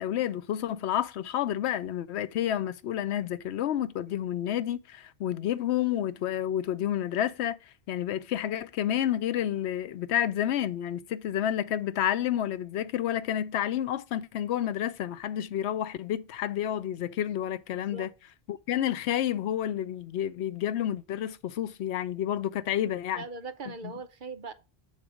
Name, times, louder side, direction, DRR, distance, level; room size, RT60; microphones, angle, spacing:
voice 1, 0.0-7.6 7.9-18.1 18.5-23.2 23.8-23.9, left 11 dB, 85° left, 0.9 m, -30 dB
voice 2, 17.7-18.1 23.1-24.5, right 4 dB, 55° right, 0.9 m, -40 dB
7.4 x 4.1 x 4.9 m
omnidirectional pair, 1.1 m